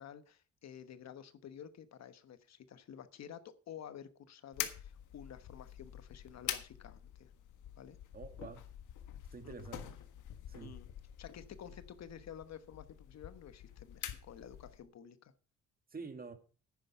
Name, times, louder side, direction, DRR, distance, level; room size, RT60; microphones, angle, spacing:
voice 1, 0.0-7.3 7.8-8.0 9.4-9.5 10.6-10.9 11.2-15.3, left 8 dB, 60° left, 12 dB, 1.2 m, -51 dB
sound 1, 4.5-14.9, left 11 dB, 80° left, 1.5 m, -46 dB
voice 2, 8.1-8.6 9.3-9.9 10.5-10.8 15.9-16.3, right 4 dB, 30° right, 8 dB, 2.0 m, -47 dB
10.0 x 9.5 x 5.6 m, 0.37 s
cardioid pair, 90°, 30 cm